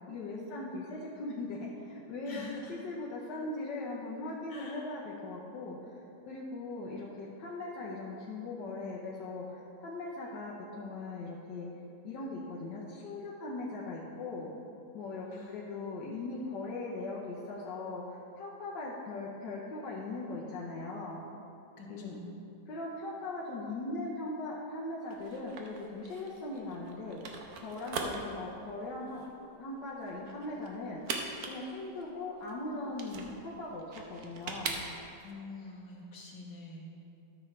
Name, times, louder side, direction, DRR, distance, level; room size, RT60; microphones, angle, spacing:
voice 1, 0.1-6.0 6.3-11.7 12.0-14.5 14.9-21.2 21.9-22.2 22.7-29.3 29.6-31.0 31.5-34.8, left 2 dB, 90° left, -5 dB, 1.6 m, -39 dB
voice 2, 2.3-2.8 4.5-4.9 15.3-15.7 21.8-22.3 35.2-37.0, left 2 dB, 75° left, -3 dB, 2.0 m, -46 dB
sound 1, 25.1-35.3, right 4 dB, 65° right, 1.2 m, -41 dB
13.0 x 6.3 x 3.2 m, 2.7 s
omnidirectional pair, 1.9 m